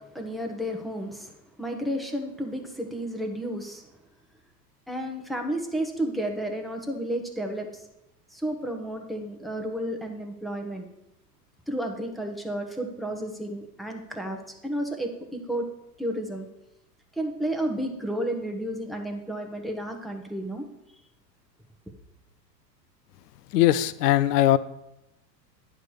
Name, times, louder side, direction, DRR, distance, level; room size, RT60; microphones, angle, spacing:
voice 1, 0.0-1.3 1.6-3.8 4.9-7.7 8.3-10.9 11.7-15.7 16.0-16.5 17.1-20.6, right 1 dB, ahead, 2 dB, 1.0 m, -32 dB
voice 2, 23.5-24.6, left 13 dB, 65° left, 16 dB, 0.6 m, -20 dB
9.9 x 3.4 x 6.3 m, 0.87 s
hypercardioid pair, 95°, 50 cm